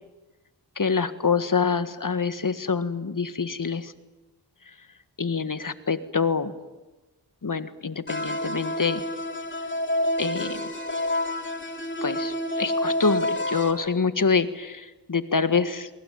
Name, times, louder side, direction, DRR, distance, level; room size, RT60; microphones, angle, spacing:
voice 1, 0.8-3.9 5.2-6.6 7.4-9.0 10.2-10.7 12.0-15.9, left 5 dB, 50° left, 12 dB, 1.7 m, -26 dB
sound 1, 8.1-13.7, left 1 dB, 25° left, 4.2 m, -28 dB
27.0 x 22.5 x 9.4 m, 1.1 s
cardioid pair, 40°, 41 cm